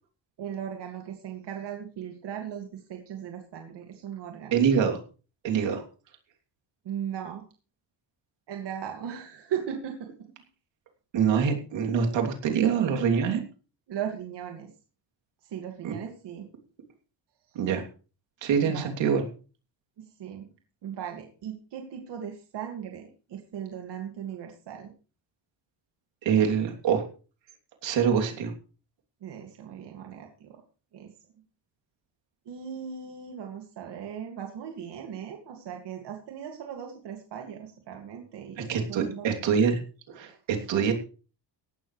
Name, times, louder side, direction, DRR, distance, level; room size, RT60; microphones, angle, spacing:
voice 1, 0.4-4.6 6.8-7.4 8.5-10.1 13.9-14.7 15.4-16.5 17.5-17.6 18.6-18.9 20.0-20.5 20.8-24.9 29.2-30.6 30.9-31.1 32.5-39.3, right 8 dB, 70° right, 3 dB, 2.3 m, -38 dB
voice 2, 4.5-5.0 5.4-5.8 11.1-13.4 15.8-16.0 17.5-17.8 18.4-19.2 26.2-27.0 27.8-28.5 38.6-39.8 40.1-40.9, right 7 dB, 85° right, 3 dB, 3.1 m, -25 dB
17.0 x 12.5 x 3.3 m, 0.37 s
cardioid pair, 145°, 43 cm